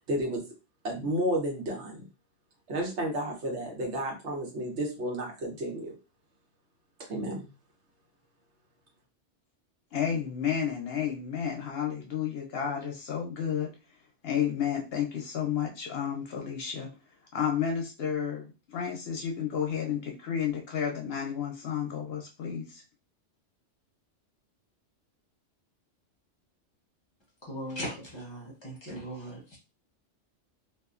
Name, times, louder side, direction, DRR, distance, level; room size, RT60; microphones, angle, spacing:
voice 1, 0.1-0.4 0.8-2.1 2.7-5.9 7.1-7.4, right 1 dB, 70° right, 0 dB, 1.2 m, -31 dB
voice 2, 9.9-13.7 14.2-16.9 17.3-22.8, left 8 dB, 65° left, 1 dB, 0.7 m, -31 dB
voice 3, 27.4-29.6, equal, 25° left, -4 dB, 0.9 m, -39 dB
2.7 x 2.4 x 2.4 m, 0.30 s
omnidirectional pair, 1.2 m